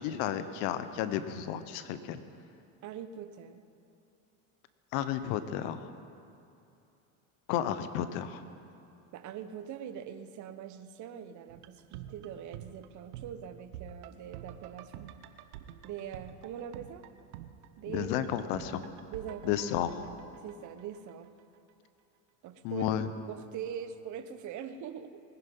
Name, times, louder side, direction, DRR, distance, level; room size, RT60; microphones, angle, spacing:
voice 1, 0.0-2.2 4.9-5.8 7.5-8.4 17.9-18.9 19.4-19.9 22.6-23.1, left 10 dB, 65° left, 12 dB, 1.0 m, -32 dB
voice 2, 2.8-3.6 9.1-15.1 15.8-17.1 17.8-18.1 19.1-19.6 20.4-21.3 22.4-22.9 23.3-25.2, right 8 dB, 45° right, 10 dB, 1.0 m, -42 dB
sound 1, 11.5-21.4 21.7-21.8, right 10 dB, 85° right, 0.9 m, -48 dB
21.0 x 10.5 x 5.5 m, 2.7 s
supercardioid pair, 110°, 43 cm